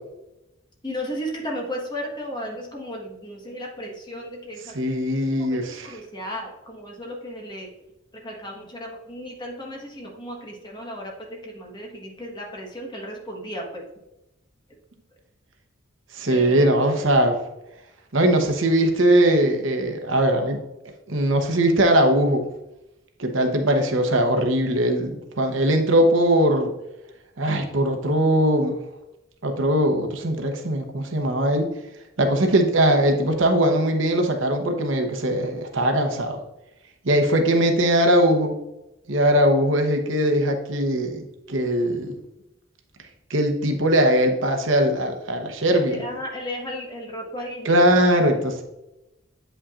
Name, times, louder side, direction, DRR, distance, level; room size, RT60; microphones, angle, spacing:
voice 1, 0.8-4.7 5.4-7.7 8.2-11.1 11.4-13.8 16.3-16.8 45.9-47.8, equal, 20° left, -1 dB, 1.4 m, -34 dB
voice 2, 4.7-6.0 16.1-17.4 18.1-20.6 21.1-22.4 23.2-26.7 27.4-28.8 29.4-31.7 32.2-36.4 37.0-38.5 39.1-42.1 43.3-46.1 47.6-48.6, right 1 dB, 70° right, 4 dB, 0.9 m, -20 dB
8.4 x 5.6 x 2.5 m, 0.92 s
head